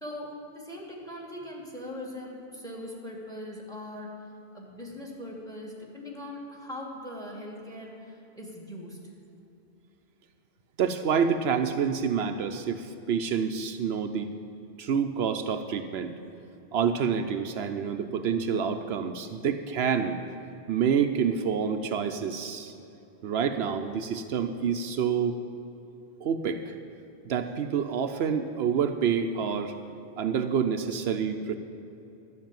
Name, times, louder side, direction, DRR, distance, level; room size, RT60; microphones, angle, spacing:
voice 1, 0.0-4.1 4.5-9.0, left 1 dB, 5° left, 0 dB, 1.9 m, -40 dB
voice 2, 10.8-14.3 14.8-16.1 16.7-20.2 20.7-22.7 23.2-25.4 26.2-26.7 27.2-29.7 30.2-31.5, right 7 dB, 75° right, 7 dB, 0.9 m, -27 dB
12.0 x 6.2 x 9.0 m, 2.8 s
omnidirectional pair, 1.1 m